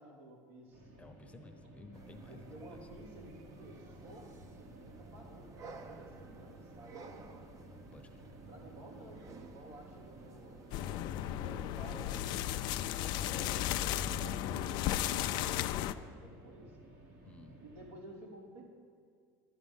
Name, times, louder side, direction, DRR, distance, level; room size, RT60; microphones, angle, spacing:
voice 1, 0.0-0.9 2.3-5.5 5.8-7.6 8.5-12.4 13.1-16.7 17.6-18.6, right 1 dB, 90° right, -3 dB, 3.3 m, -53 dB
sound 1, 0.7-17.9, right 1 dB, 60° right, 1.7 m, -56 dB
voice 2, 1.0-2.8 7.9-8.4 17.2-17.6, left 2 dB, 15° left, 5 dB, 0.9 m, -54 dB
sound 2, 1.9-14.5, right 3 dB, 40° right, 0.8 m, -53 dB
sound 3, 10.7-15.9, left 12 dB, 65° left, 0.4 m, -35 dB
11.5 x 9.9 x 5.5 m, 2.2 s
supercardioid pair, 120°, 8 cm